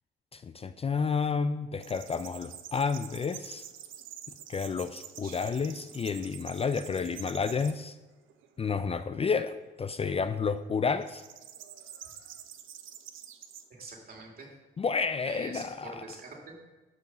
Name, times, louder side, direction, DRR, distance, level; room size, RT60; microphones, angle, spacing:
voice 1, 0.3-3.7 4.5-8.0 8.6-11.2 14.8-15.9, left 5 dB, 30° left, 11 dB, 0.5 m, -30 dB
sound 1, 1.8-7.7 8.3-8.8 11.0-13.6, right 10 dB, 80° right, 0.9 m, -47 dB
voice 2, 5.2-5.5 13.4-14.5 15.2-16.6, right 3 dB, 50° right, 0 dB, 3.0 m, -46 dB
11.5 x 6.0 x 5.5 m, 1.2 s
cardioid pair, 90°, 20 cm